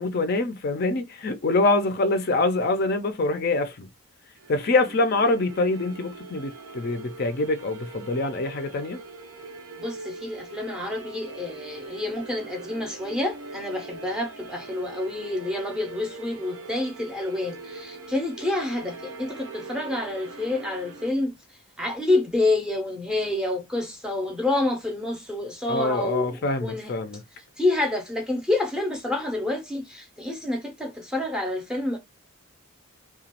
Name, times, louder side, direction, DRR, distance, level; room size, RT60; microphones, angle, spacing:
voice 1, 0.0-3.9 4.5-9.0 25.7-27.2, left 2 dB, 45° left, 0.4 m, -25 dB
sound 1, 4.4-21.1, right 3 dB, 75° right, 0.6 m, -42 dB
voice 2, 9.8-21.3 21.8-26.9 27.6-32.0, left 2 dB, 5° right, 0.6 m, -28 dB
2.9 x 2.2 x 2.9 m
head